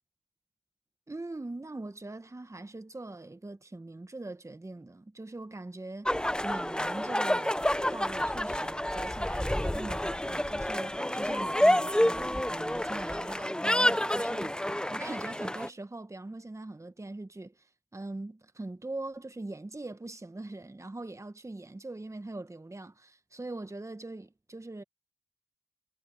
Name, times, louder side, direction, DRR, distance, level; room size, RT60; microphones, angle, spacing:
voice 1, 1.1-6.1 6.4-7.6 7.9-14.6 14.9-17.7 17.9-24.8, right 2 dB, 20° right, 1.5 m, -42 dB
sound 1, 6.1-15.7, left 1 dB, 5° left, 1.2 m, -29 dB
supercardioid pair, 40°, 15 cm